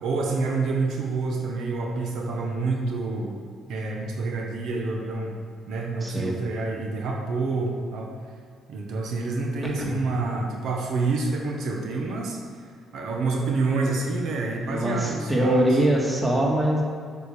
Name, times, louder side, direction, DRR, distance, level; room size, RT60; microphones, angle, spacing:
voice 1, 0.0-3.4 3.7-5.3 5.7-8.1 8.7-12.4 12.9-15.6, right 3 dB, 75° right, 0 dB, 1.2 m, -28 dB
voice 2, 6.0-6.3 9.6-9.9 14.7-16.8, right 1 dB, 15° right, -2 dB, 2.1 m, -23 dB
7.9 x 5.2 x 6.5 m, 2.1 s
cardioid pair, 95°, 0 cm